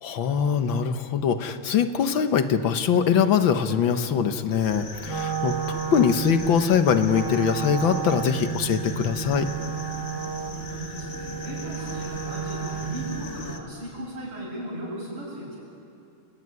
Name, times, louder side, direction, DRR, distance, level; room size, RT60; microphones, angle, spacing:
voice 1, 0.0-9.5, left 7 dB, 65° left, 9 dB, 1.8 m, -23 dB
sound 1, 4.6-13.6, left 3 dB, 30° left, 1.6 m, -39 dB
Wind instrument woodwind instrument, 5.0-13.2, right 8 dB, 15° right, 2.0 m, -32 dB
voice 2, 10.6-15.6, right 1 dB, 90° right, -3 dB, 8.9 m, -36 dB
29.5 x 17.5 x 9.7 m, 2.9 s
omnidirectional pair, 2.4 m